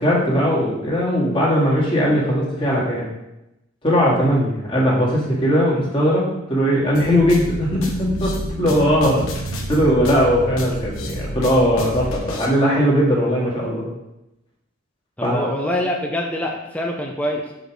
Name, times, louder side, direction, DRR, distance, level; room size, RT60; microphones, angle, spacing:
voice 1, 0.0-3.1 3.8-9.3 9.7-13.9 15.2-15.5, equal, 25° left, -5 dB, 1.9 m, -19 dB
sound 1, 6.9-12.5, left 2 dB, 85° left, 1.1 m, -34 dB
sound 2, 7.1-12.1, right 1 dB, 80° right, 0.6 m, -30 dB
voice 2, 15.2-17.5, left 1 dB, 5° left, 0 dB, 0.6 m, -25 dB
5.3 x 4.7 x 6.1 m, 0.92 s
head